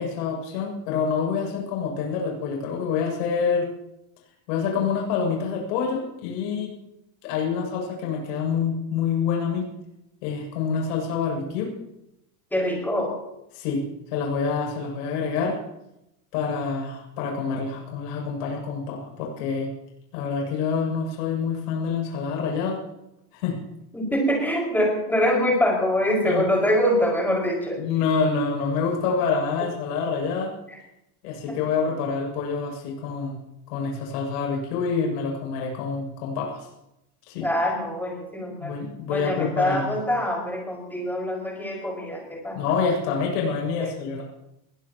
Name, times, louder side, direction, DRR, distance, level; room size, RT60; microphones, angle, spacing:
voice 1, 0.0-3.7 4.5-6.7 7.2-9.7 10.2-11.7 13.5-13.8 14.1-15.6 16.3-19.7 20.1-22.8 23.3-23.5 26.2-26.4 27.8-30.5 31.2-33.4 33.7-36.7 37.3-37.5 38.6-39.9 42.5-44.2, left 5 dB, 75° left, 0 dB, 7.6 m, -27 dB
voice 2, 12.5-13.1 23.9-27.8 30.7-30.8 31.5-31.6 37.4-38.7 39.1-42.6 43.8-43.9, equal, 5° left, -2 dB, 5.8 m, -24 dB
22.5 x 18.0 x 3.1 m, 0.88 s
supercardioid pair, 160°, 48 cm